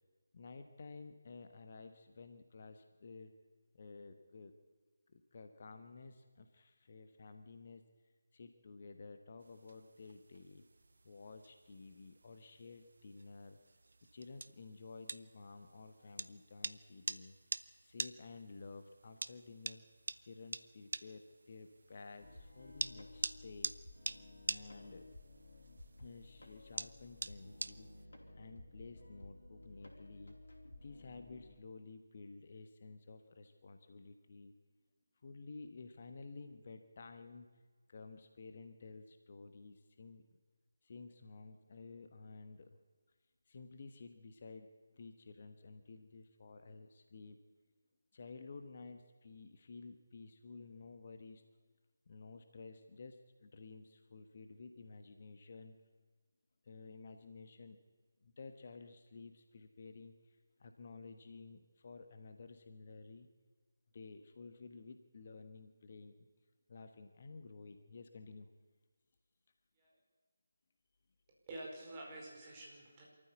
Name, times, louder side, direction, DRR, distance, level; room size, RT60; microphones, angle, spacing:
voice 1, 0.3-3.3 3.7-4.5 5.1-7.8 8.3-10.6 11.0-13.6 14.1-17.3 17.8-19.8 20.2-23.7 24.5-25.0 26.0-27.9 28.3-30.4 30.8-34.5 35.2-37.5 37.9-40.4 40.8-42.8 43.5-47.4 48.1-51.4 52.1-55.7 56.6-57.8 58.2-63.3 63.9-66.1 66.7-68.5, left 4 dB, 40° left, 8 dB, 1.3 m, -53 dB
sound 1, 9.4-28.0, right 3 dB, 55° right, 0.6 m, -47 dB
Lo-fi Music Guitar (loop version), 22.2-31.6, left 2 dB, 65° left, 4.1 m, -55 dB
voice 2, 71.5-73.0, right 1 dB, 20° right, -2 dB, 5.0 m, -48 dB
25.5 x 14.0 x 8.4 m, 1.4 s
figure-of-eight pair, 155°, 0 cm